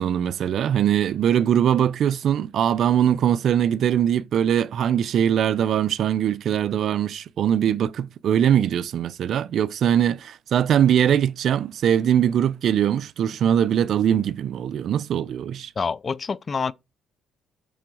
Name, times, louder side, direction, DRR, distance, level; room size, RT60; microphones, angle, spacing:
voice 1, 0.0-15.7, right 9 dB, 65° right, 0.5 m, -21 dB
voice 2, 15.8-16.7, left 5 dB, 35° left, 0.5 m, -26 dB
8.1 x 3.8 x 6.2 m
cardioid pair, 95°, 0 cm